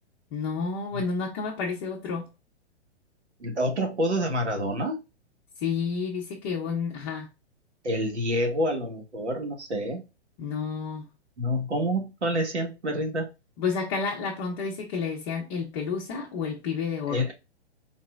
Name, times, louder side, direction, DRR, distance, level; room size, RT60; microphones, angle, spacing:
voice 1, 0.3-2.3 5.6-7.3 10.4-11.1 13.6-17.2, left 5 dB, 30° left, 0.7 m, -30 dB
voice 2, 3.4-5.0 7.8-10.0 11.4-13.3 17.1-17.3, equal, 80° right, 1.6 m, -27 dB
4.1 x 2.9 x 2.3 m
figure-of-eight pair, 120°, 34 cm